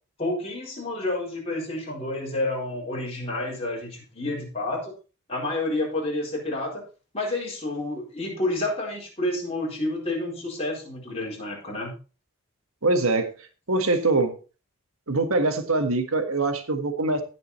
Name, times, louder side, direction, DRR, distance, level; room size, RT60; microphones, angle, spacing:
voice 1, 0.2-4.9 5.3-6.8 7.1-11.9, left 2 dB, 30° left, -3 dB, 4.4 m, -29 dB
voice 2, 12.8-13.3 13.7-14.3 15.1-17.2, right 2 dB, 75° right, 7 dB, 1.7 m, -23 dB
16.0 x 5.4 x 4.3 m, 0.34 s
head